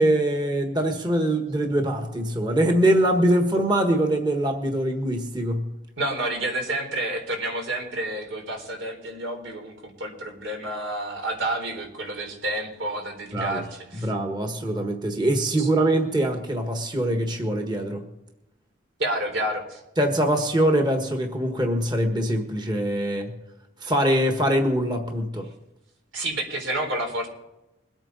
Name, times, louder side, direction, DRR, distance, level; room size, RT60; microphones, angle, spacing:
voice 1, 0.0-5.7 13.3-13.6 14.0-18.1 20.0-23.3 23.8-25.5, right 1 dB, 20° right, 4 dB, 1.4 m, -23 dB
voice 2, 6.0-14.1 15.6-15.7 19.0-19.8 26.1-27.3, right 1 dB, 75° right, 2 dB, 3.9 m, -29 dB
22.5 x 8.9 x 4.1 m, 0.92 s
head